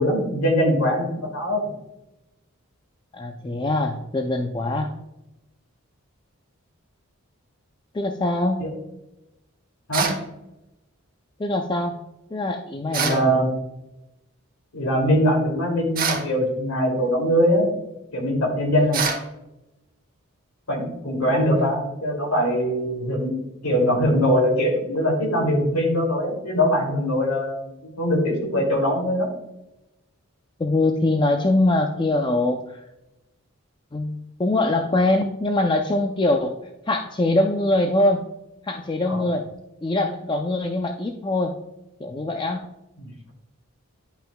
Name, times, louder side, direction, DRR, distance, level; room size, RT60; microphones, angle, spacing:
voice 1, 0.0-1.7 8.6-8.7 9.9-10.1 12.9-13.5 14.7-17.7 18.1-19.1 20.7-23.3 23.6-29.3 39.1-39.2 43.0-43.1, equal, 85° left, 0 dB, 2.5 m, -22 dB
voice 2, 3.1-4.9 7.9-8.7 11.4-12.0 12.3-13.4 18.7-19.0 30.6-32.8 33.9-36.6 36.9-38.3 38.6-39.5 39.8-41.5 42.0-42.7, left 2 dB, 20° left, 4 dB, 0.4 m, -23 dB
sound 1, 9.9-10.2 12.9-13.2 15.9-16.3 18.9-19.2, right 5 dB, 40° right, 1.0 m, -25 dB
10.5 x 5.7 x 2.2 m, 0.93 s
head